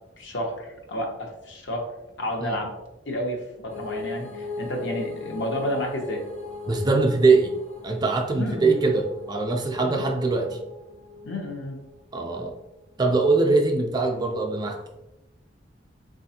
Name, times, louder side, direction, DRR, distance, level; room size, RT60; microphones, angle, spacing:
voice 1, 0.2-1.9 2.2-2.7 3.1-6.2 8.4-8.9 9.8-10.1 11.2-11.8, left 1 dB, 75° left, 1 dB, 0.8 m, -31 dB
sound 1, 3.7-12.4, left 3 dB, 35° left, 0.7 m, -38 dB
voice 2, 6.7-7.5 7.8-10.6 12.1-12.5 13.0-14.8, right 3 dB, 20° right, 3 dB, 0.3 m, -22 dB
4.0 x 2.5 x 2.7 m, 0.95 s
head